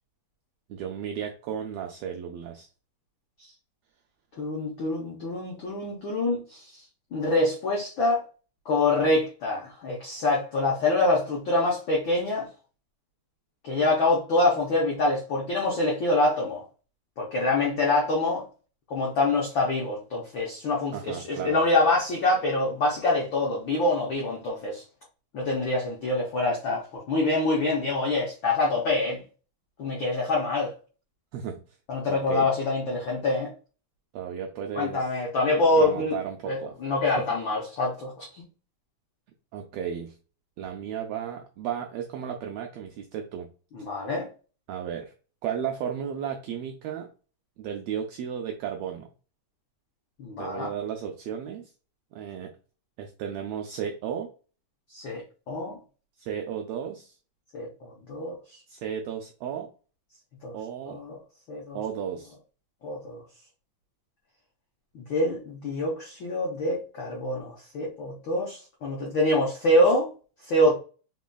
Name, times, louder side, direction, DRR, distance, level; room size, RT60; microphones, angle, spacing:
voice 1, 0.7-2.7 20.9-21.6 31.3-31.6 32.1-32.5 34.1-35.1 35.8-36.7 39.5-40.1 40.6-43.5 44.7-45.1 45.4-47.1 47.6-49.1 50.4-51.7 52.1-52.5 53.0-54.3 56.2-57.1 58.7-59.7 60.5-61.0 61.7-62.3, right 8 dB, 85° right, 1.5 m, -34 dB
voice 2, 4.4-6.8 7.1-8.2 8.6-12.5 13.6-16.6 17.2-18.5 18.9-24.8 25.3-29.2 29.8-30.7 31.9-33.5 34.7-36.2 36.5-38.4 43.7-44.3 50.2-50.7 54.9-55.8 57.5-58.4 60.4-60.5 60.9-61.2 61.5-61.8 62.8-63.2 64.9-70.1 70.5-70.7, left 2 dB, 85° left, 1.0 m, -25 dB
4.1 x 3.9 x 2.2 m
omnidirectional pair, 3.5 m